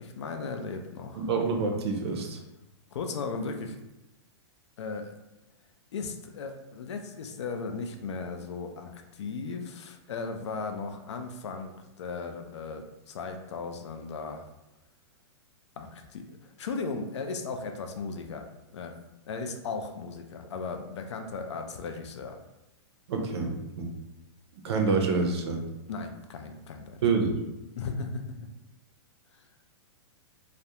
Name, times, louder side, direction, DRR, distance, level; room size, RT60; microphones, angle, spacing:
voice 1, 0.0-1.2 2.9-3.8 4.8-5.1 5.9-14.5 15.8-16.3 16.6-18.5 18.7-18.9 19.3-22.4 25.9-27.0 27.8-28.2, left 4 dB, 75° left, 5 dB, 0.4 m, -36 dB
voice 2, 1.1-2.4 23.1-23.9 24.6-25.6 27.0-27.4, right 4 dB, 65° right, 2 dB, 0.5 m, -27 dB
2.3 x 2.1 x 2.8 m, 0.96 s
hypercardioid pair, 175°, 15 cm